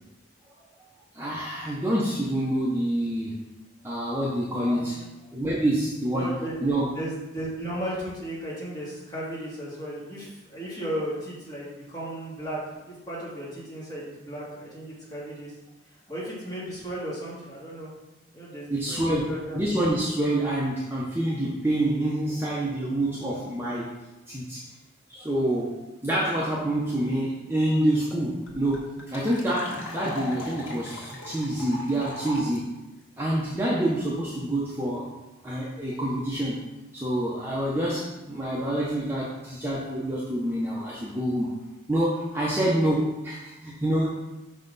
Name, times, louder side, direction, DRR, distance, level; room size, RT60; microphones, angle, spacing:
voice 1, 1.1-3.4 3.8-5.0 5.3-6.3 6.6-6.9 18.7-23.9 24.3-24.6 25.1-32.7 33.2-35.1 35.4-36.6 36.9-41.5 41.9-44.1, right 1 dB, 10° right, -6 dB, 0.8 m, -27 dB
voice 2, 4.6-5.1 6.1-6.6 6.9-15.5 16.1-17.9 18.3-19.6, right 1 dB, 20° left, -8 dB, 2.2 m, -35 dB
sound 1, 27.8-27.9 28.1-28.2 28.5-32.6, left 1 dB, 80° left, 1.5 m, -38 dB
5.6 x 5.4 x 4.0 m, 1.0 s
head